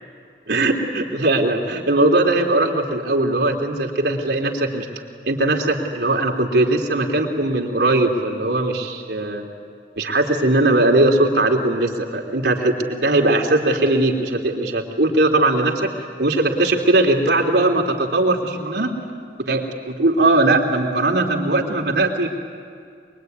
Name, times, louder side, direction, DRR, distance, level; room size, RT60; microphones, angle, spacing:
voice 1, 0.5-4.9 5.3-9.4 10.0-15.9 16.2-18.9 19.4-22.3, right 2 dB, 80° right, 0 dB, 3.3 m, -19 dB
24.0 x 23.5 x 9.5 m, 2.2 s
head